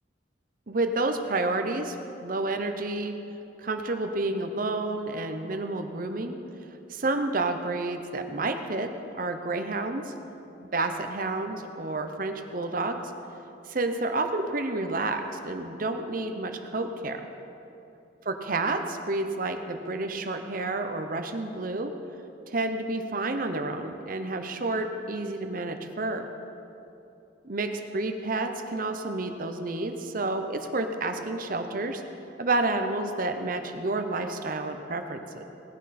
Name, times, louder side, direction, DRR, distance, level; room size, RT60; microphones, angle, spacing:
voice 1, 0.7-1.9 2.2-3.1 3.6-6.4 6.9-10.1 10.6-13.0 13.7-17.3 18.2-21.9 22.5-26.3 27.5-32.0 32.4-35.4, right 2 dB, 45° right, 6 dB, 0.8 m, -30 dB
18.0 x 10.5 x 4.3 m, 2.9 s
head